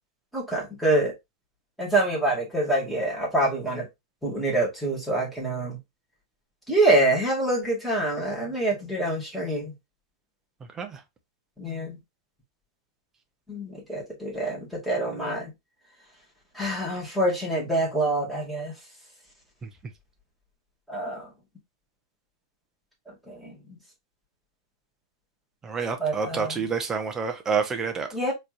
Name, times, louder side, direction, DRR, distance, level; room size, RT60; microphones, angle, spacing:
voice 1, 0.3-1.1 1.8-3.9 4.2-5.8 6.7-9.7 11.6-12.0 13.5-15.5 16.5-18.7 20.9-21.3 23.1-23.8 26.0-26.7 28.1-28.3, right 2 dB, ahead, 2.4 m, -26 dB
voice 2, 25.6-28.1, right 5 dB, 15° right, 0.9 m, -28 dB
4.3 x 3.2 x 2.5 m
hypercardioid pair, 135°, 3 cm